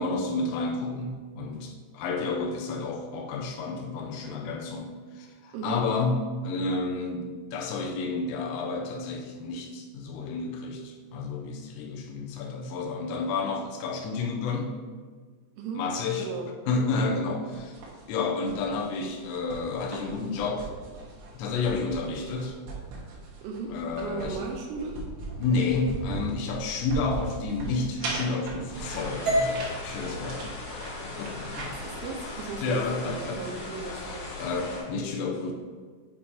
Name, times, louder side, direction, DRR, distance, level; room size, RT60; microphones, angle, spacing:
voice 1, 0.0-14.7 15.8-16.3 16.7-17.8 18.1-20.7 21.3-22.5 23.7-24.4 25.4-30.5 31.0-31.7 32.6-33.4 33.9-34.1 34.4-35.5, left 3 dB, 90° left, 0 dB, 3.3 m, -30 dB
voice 2, 5.5-5.9 15.6-15.9 16.2-16.5 23.4-25.1 31.7-34.3, right 4 dB, 85° right, 1 dB, 2.7 m, -36 dB
sound 1, 17.5-31.6, right 3 dB, 70° right, 2.9 m, -39 dB
sound 2, 28.7-34.8, left 2 dB, 70° left, 3.4 m, -38 dB
sound 3, 29.3-33.4, equal, 50° right, 2.7 m, -33 dB
8.7 x 4.4 x 2.8 m, 1.5 s
omnidirectional pair, 5.7 m